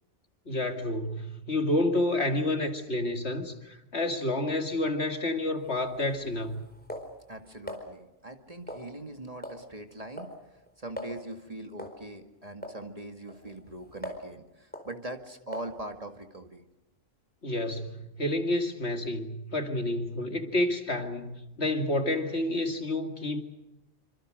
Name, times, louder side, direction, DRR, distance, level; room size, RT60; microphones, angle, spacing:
voice 1, 0.5-6.6 17.4-23.4, left 1 dB, 55° left, 6 dB, 2.5 m, -29 dB
sound 1, 5.6-7.8 8.7-9.1 9.4-9.7 9.9-10.4 10.7-10.8 11.0-11.2 11.8-12.0 12.6-12.8 13.3-14.3 14.7-14.9 15.5-15.8, equal, 5° left, 4.3 m, -41 dB
voice 2, 7.3-16.6, right 1 dB, 30° right, 5 dB, 2.1 m, -42 dB
27.0 x 26.0 x 6.5 m, 0.92 s
omnidirectional pair, 1.4 m